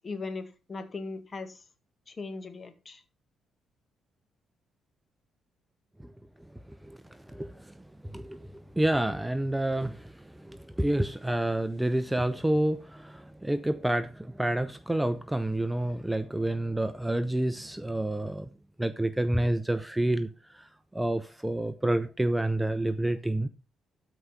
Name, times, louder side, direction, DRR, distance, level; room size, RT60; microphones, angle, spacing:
voice 1, 0.0-1.6 2.1-3.0, left 3 dB, 35° left, 1.9 m, -38 dB
voice 2, 6.7-18.5 18.8-23.5, right 1 dB, 10° right, 0.7 m, -29 dB
13.0 x 5.1 x 5.6 m
cardioid pair, 90°, 0 cm